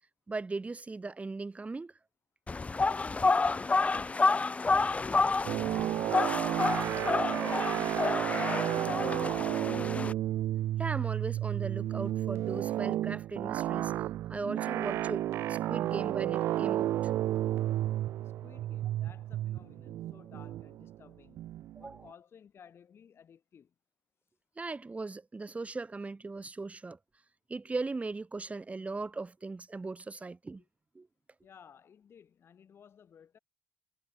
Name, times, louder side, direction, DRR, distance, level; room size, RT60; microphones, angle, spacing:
voice 1, 0.3-1.9 10.8-13.9 14.3-17.1 21.8-22.0 24.6-27.0 27.5-30.6 31.0-31.1, right 3 dB, 30° right, 1.8 m, -38 dB
sound 1, 2.5-10.1, left 3 dB, 30° left, 0.5 m, -29 dB
voice 2, 3.1-4.3 4.7-8.2 18.2-21.4 21.8-23.7 30.6-30.7 31.4-33.4, left 7 dB, 65° left, 7.9 m, -57 dB
sound 2, 5.5-22.0, right 13 dB, 85° right, 0.4 m, -32 dB
supercardioid pair, 55°, 4 cm